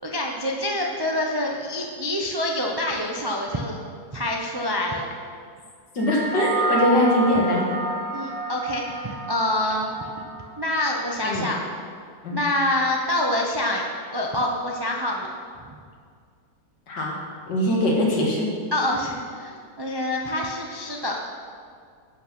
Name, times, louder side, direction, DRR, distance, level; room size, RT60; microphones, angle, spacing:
voice 1, 0.0-3.8 4.1-5.1 8.1-9.9 10.6-11.6 12.3-13.8 14.1-15.3 18.7-21.2, left 1 dB, 35° right, -1 dB, 0.3 m, -26 dB
voice 2, 5.9-7.8 11.2-11.5 12.2-12.4 16.9-17.2 17.5-18.5, left 1 dB, 75° left, -2 dB, 2.4 m, -22 dB
sound 1, 6.0-10.6, right 2 dB, 90° right, 1.9 m, -29 dB
11.0 x 6.0 x 6.0 m, 2.1 s
omnidirectional pair, 1.9 m